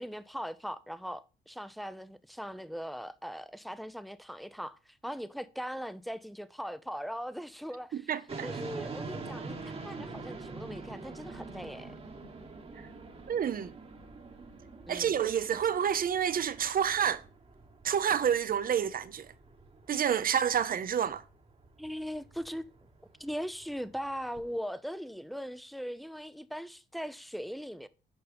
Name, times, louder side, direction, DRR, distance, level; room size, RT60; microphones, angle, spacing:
voice 1, 0.0-8.1 8.4-11.9 14.9-15.3 21.8-22.7 23.2-27.9, equal, ahead, 0.5 m, -40 dB
voice 2, 7.9-8.5 13.3-13.8 14.9-17.2 17.8-19.3 19.9-21.2, right 8 dB, 45° right, 0.7 m, -29 dB
sound 1, 8.3-24.5, right 3 dB, 30° right, 1.2 m, -46 dB
7.0 x 5.3 x 3.4 m
cardioid pair, 90°, 20 cm